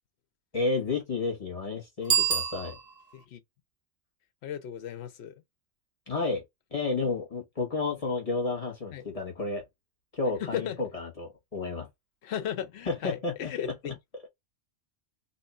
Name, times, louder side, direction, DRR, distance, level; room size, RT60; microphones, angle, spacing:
voice 1, 0.5-2.8 6.1-6.4 6.7-9.6 10.1-11.9 12.9-13.5, left 3 dB, 30° left, 1.3 m, -31 dB
Bicycle bell, 2.0-3.2, right 7 dB, 40° right, 1.0 m, -28 dB
voice 2, 4.4-5.3 8.9-9.1 10.5-10.8 12.2-14.0, left 9 dB, 70° left, 0.9 m, -35 dB
2.9 x 2.4 x 4.2 m
omnidirectional pair, 1.2 m